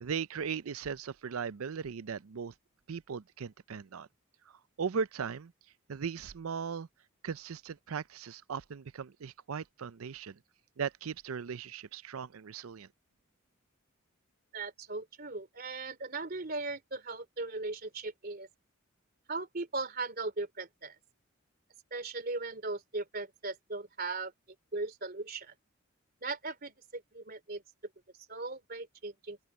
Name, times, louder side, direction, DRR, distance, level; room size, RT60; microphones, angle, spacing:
voice 1, 0.0-2.5 2.9-4.1 4.8-5.5 5.9-6.9 7.2-10.4 10.8-12.9, right 6 dB, 85° right, 0.5 m, -38 dB
voice 2, 14.5-18.5 19.3-20.9 21.9-24.3 24.7-25.5 26.2-27.6 28.3-29.4, right 3 dB, 45° right, 3.0 m, -38 dB
open air
head